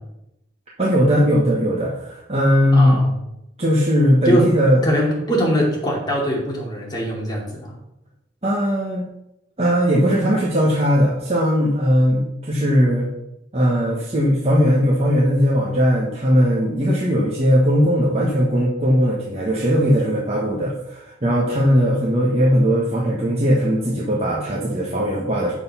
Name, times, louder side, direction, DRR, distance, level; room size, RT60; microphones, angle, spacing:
voice 1, 0.8-3.0 3.6-4.8 8.4-9.1 9.6-13.1 13.5-25.5, equal, 30° right, -4 dB, 1.3 m, -18 dB
voice 2, 2.7-3.1 4.2-4.5 4.8-7.8, equal, 20° left, -3 dB, 2.6 m, -22 dB
8.0 x 6.7 x 5.6 m, 0.86 s
head